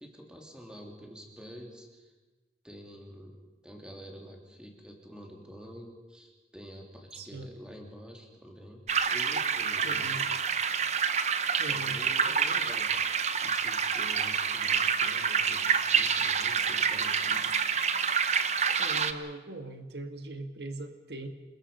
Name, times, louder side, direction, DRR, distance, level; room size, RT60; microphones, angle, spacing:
voice 1, 0.0-2.1 2.6-10.4 11.7-13.0 13.4-17.6, equal, 5° right, 1 dB, 3.0 m, -48 dB
voice 2, 7.1-7.5 9.8-10.2 11.6-12.0 18.8-21.3, right 2 dB, 75° right, 7 dB, 1.6 m, -40 dB
sound 1, 8.9-19.1, right 6 dB, 40° right, 0.9 m, -27 dB
27.0 x 21.0 x 5.6 m, 1.2 s
head